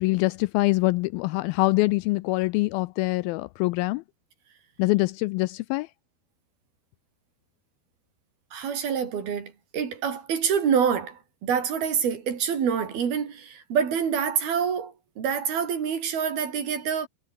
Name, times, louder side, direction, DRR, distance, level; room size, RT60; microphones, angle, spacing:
voice 1, 0.0-4.0 4.8-5.9, left 21 dB, 80° left, 2.2 m, -24 dB
voice 2, 8.5-17.1, right 7 dB, 70° right, 5.4 m, -26 dB
omnidirectional pair, 4.5 m